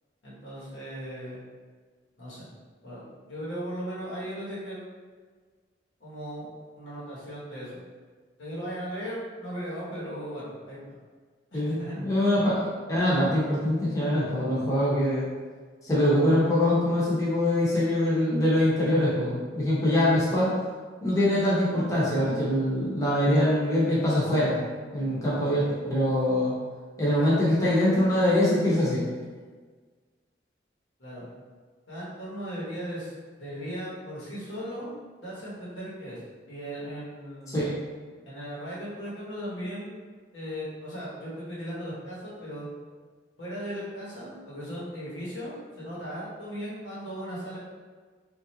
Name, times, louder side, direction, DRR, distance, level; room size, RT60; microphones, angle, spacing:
voice 1, 0.2-1.4 2.2-2.5 2.8-3.0 3.3-4.9 6.0-6.5 6.8-7.8 8.4-11.0 11.5-12.1 31.0-31.3 31.9-33.1 33.4-34.9 35.2-36.2 36.5-37.6 38.2-39.9 40.3-42.7 43.4-47.6, equal, 90° left, -8 dB, 1.2 m, -37 dB
voice 2, 11.5-12.6 12.9-15.3 15.8-20.5 21.0-24.6 24.9-26.5 27.0-29.0 37.5-37.7, left 1 dB, 20° left, -9 dB, 0.8 m, -23 dB
3.2 x 2.6 x 2.7 m, 1.5 s
head